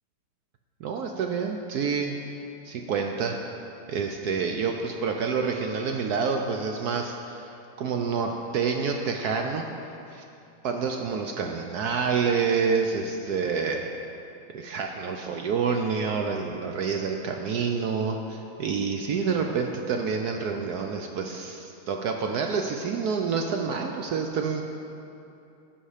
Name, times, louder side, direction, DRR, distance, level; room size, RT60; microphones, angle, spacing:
voice 1, 0.8-2.4 2.6-3.4 3.9-9.6 10.1-10.2 10.6-13.9 14.5-24.6, right 5 dB, 70° right, 3 dB, 0.9 m, -28 dB
15.5 x 5.6 x 4.9 m, 2.7 s
omnidirectional pair, 2.1 m